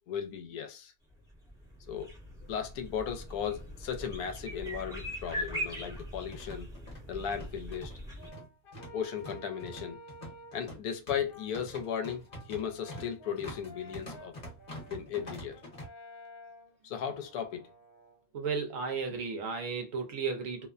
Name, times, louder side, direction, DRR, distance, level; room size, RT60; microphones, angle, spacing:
voice 1, 0.1-0.9 1.9-2.1 2.5-6.7 7.1-7.9 8.9-10.0 10.5-12.2 12.5-14.3 14.9-15.6 16.8-17.7, left 8 dB, 80° left, 1.1 m, -36 dB
sound 1, 1.1-8.3, equal, 5° right, 0.8 m, -41 dB
sound 2, 3.8-3.9 4.2-4.3 5.1-15.9, equal, 30° left, 1.0 m, -46 dB
Brass instrument, 8.2-10.7 11.3-18.2, equal, 55° left, 0.6 m, -52 dB
voice 2, 18.3-20.7, right 5 dB, 65° right, 1.0 m, -34 dB
2.8 x 2.1 x 2.4 m
omnidirectional pair, 1.6 m